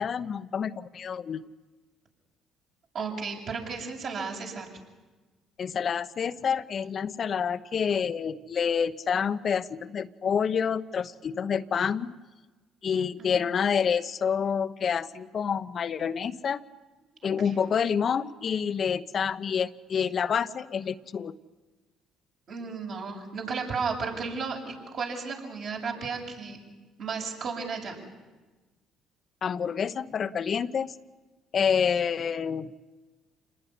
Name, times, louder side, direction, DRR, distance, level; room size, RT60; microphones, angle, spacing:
voice 1, 0.0-1.5 5.6-12.2 12.8-16.6 17.2-21.3 29.4-31.0 31.5-32.7, left 7 dB, 50° left, 10 dB, 1.0 m, -28 dB
voice 2, 2.9-4.7 13.2-13.5 17.2-17.6 22.5-26.6 27.0-28.0, right 5 dB, 60° right, 0 dB, 7.8 m, -34 dB
28.0 x 20.0 x 10.0 m, 1.2 s
hypercardioid pair, 65°, 0 cm